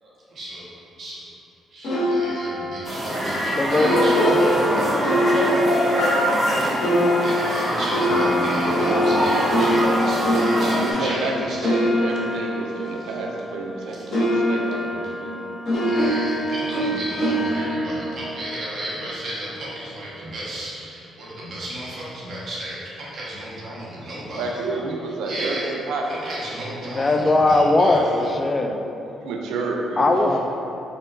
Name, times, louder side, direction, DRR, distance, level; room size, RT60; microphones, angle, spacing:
voice 1, 0.0-0.7 1.0-1.3 1.7-5.0 5.4-5.5 6.3-6.8 7.2-13.4 13.8-15.3 15.8-25.7 26.0-28.6 30.1-30.4, right 1 dB, 60° right, -7 dB, 1.1 m, -35 dB
sound 1, 1.8-13.8 14.1-19.3, equal, 70° left, 1.5 m, -24 dB
sound 2, 2.8-10.9, right 1 dB, 30° right, 1.0 m, -24 dB
voice 2, 3.5-7.8 26.8-29.0 30.0-30.4, left 2 dB, 30° left, 4 dB, 0.3 m, -22 dB
voice 3, 10.6-15.5 24.4-26.3 29.2-30.2, right 3 dB, 90° right, 1 dB, 0.4 m, -29 dB
4.3 x 3.8 x 2.5 m, 2.8 s
cardioid pair, 90°, 0 cm